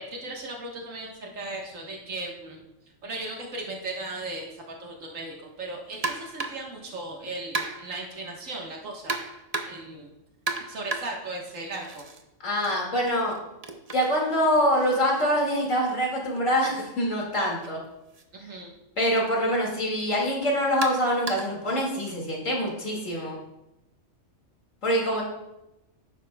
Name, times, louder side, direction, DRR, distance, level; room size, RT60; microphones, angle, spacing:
voice 1, 0.0-2.6 3.0-9.2 9.7-10.1 10.7-12.1 18.4-18.7, right 2 dB, 90° right, -1 dB, 1.7 m, -37 dB
sound 1, 6.0-6.7 7.5-8.0 9.1-9.9 10.5-12.2 12.5-16.4 17.5-17.7 18.1-18.2 19.2-19.3 20.8-21.6, right 3 dB, 35° right, 0.8 m, -35 dB
voice 2, 12.4-13.3 13.9-17.8 19.0-23.4 24.8-25.2, equal, 80° left, -2 dB, 2.6 m, -25 dB
11.0 x 9.8 x 2.3 m, 0.92 s
omnidirectional pair, 1.3 m